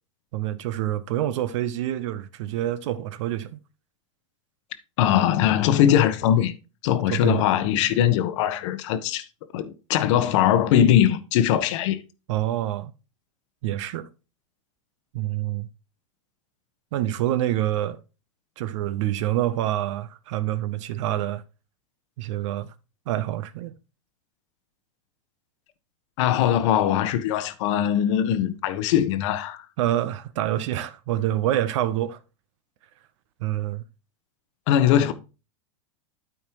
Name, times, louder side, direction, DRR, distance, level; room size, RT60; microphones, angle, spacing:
voice 1, 0.3-3.6 7.1-7.5 12.3-12.9 13.6-14.1 15.1-15.7 16.9-18.0 18.6-21.4 22.2-22.7 23.1-23.7 29.8-32.2 33.4-33.8, right 13 dB, 65° right, 0.7 m, -26 dB
voice 2, 5.0-6.5 6.8-9.2 9.5-12.0 26.2-29.7 34.7-35.1, left 10 dB, 65° left, 1.0 m, -21 dB
12.5 x 4.3 x 3.0 m
hypercardioid pair, 110°, 17 cm